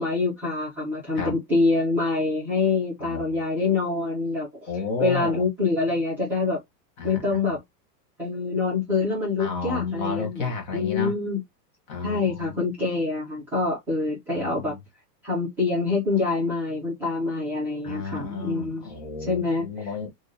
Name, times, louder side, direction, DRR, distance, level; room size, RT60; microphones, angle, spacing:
voice 1, 0.0-4.7 5.0-6.6 7.0-7.6 8.2-10.4 10.7-11.4 12.0-14.7 15.2-18.9 19.3-19.7, left 3 dB, 5° right, 0.6 m, -25 dB
voice 2, 3.0-3.4 4.7-5.4 7.0-7.6 9.4-11.1 11.9-12.6 14.3-14.8 17.8-20.1, left 5 dB, 30° left, 0.8 m, -32 dB
3.4 x 2.5 x 2.6 m
supercardioid pair, 175°, 49 cm